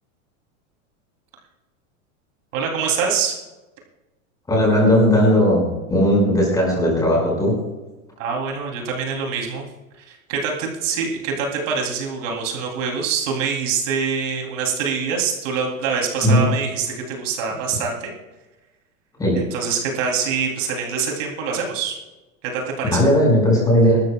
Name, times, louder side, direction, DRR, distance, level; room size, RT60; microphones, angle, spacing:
voice 1, 2.5-3.3 8.2-9.7 10.0-18.1 19.4-21.9 22.4-23.0, right 6 dB, 65° right, 0 dB, 3.0 m, -25 dB
voice 2, 4.5-7.6 16.2-16.4 19.2-19.5 22.8-24.0, equal, 10° left, -3 dB, 5.1 m, -17 dB
24.0 x 13.0 x 2.3 m, 1.1 s
supercardioid pair, 170°, 42 cm